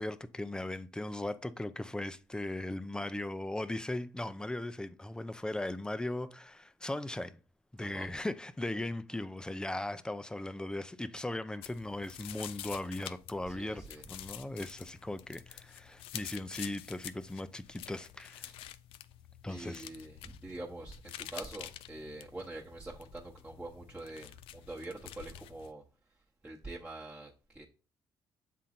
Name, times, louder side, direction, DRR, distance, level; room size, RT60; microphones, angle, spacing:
voice 1, 0.0-7.4 7.7-18.5 19.4-19.8, left 1 dB, 10° left, 0.5 m, -38 dB
sound 1, 11.6-25.7, left 12 dB, 85° left, 0.4 m, -48 dB
voice 2, 13.5-14.0 18.4-18.6 19.5-25.8 26.4-27.6, right 2 dB, 15° right, 1.1 m, -45 dB
7.3 x 3.8 x 4.3 m
cardioid pair, 80°, 9 cm